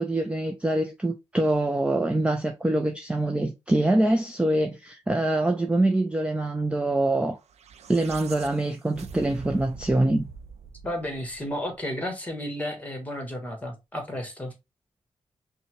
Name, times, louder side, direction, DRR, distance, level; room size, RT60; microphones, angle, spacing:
voice 1, 0.0-7.4 7.9-10.3, right 1 dB, 10° right, 0.4 m, -24 dB
sound 1, 7.4-11.8, right 5 dB, 85° right, 0.5 m, -43 dB
voice 2, 10.8-14.5, left 1 dB, 15° left, 1.3 m, -32 dB
5.3 x 2.2 x 3.0 m
wide cardioid pair, 120°, 11 cm